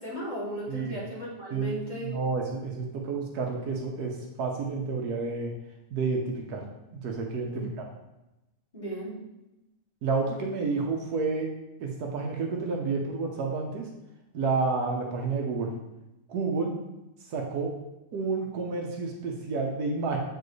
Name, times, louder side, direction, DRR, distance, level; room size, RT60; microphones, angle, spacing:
voice 1, 0.0-2.1 7.5-7.7 8.7-9.2, right 1 dB, 30° left, -9 dB, 2.6 m, -36 dB
voice 2, 1.5-5.5 5.9-6.6 7.0-7.8 10.0-11.5 11.8-13.9 14.3-15.7 16.3-16.7 17.3-17.7 18.1-20.2, right 4 dB, 85° right, 1 dB, 1.4 m, -30 dB
7.4 x 4.6 x 3.2 m, 0.95 s
omnidirectional pair, 1.6 m